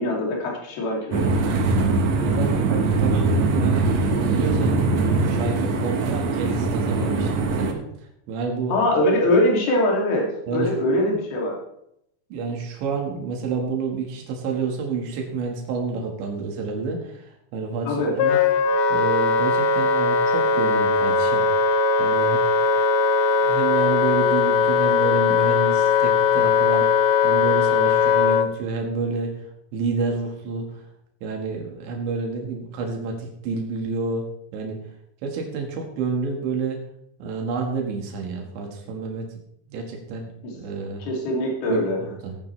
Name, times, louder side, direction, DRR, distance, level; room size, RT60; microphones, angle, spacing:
voice 1, 0.0-1.4 8.7-11.6 17.9-18.1 40.4-40.5 41.0-42.0, left 1 dB, 60° left, -1 dB, 4.5 m, -22 dB
sound 1, 1.1-7.7, right 3 dB, 70° right, 1.7 m, -22 dB
voice 2, 2.2-3.9 4.3-7.8 8.3-8.9 10.5-10.7 12.3-18.4 18.9-21.5 22.0-22.4 23.3-29.4 29.7-30.9 31.2-34.8 35.2-36.8 37.2-39.3 39.7-40.3 40.5-41.0 41.7-42.4, right 4 dB, 90° right, 1 dB, 4.1 m, -29 dB
Wind instrument woodwind instrument, 18.2-28.5, left 5 dB, 80° left, 2.4 m, -19 dB
16.5 x 9.3 x 3.3 m, 0.75 s
omnidirectional pair, 5.0 m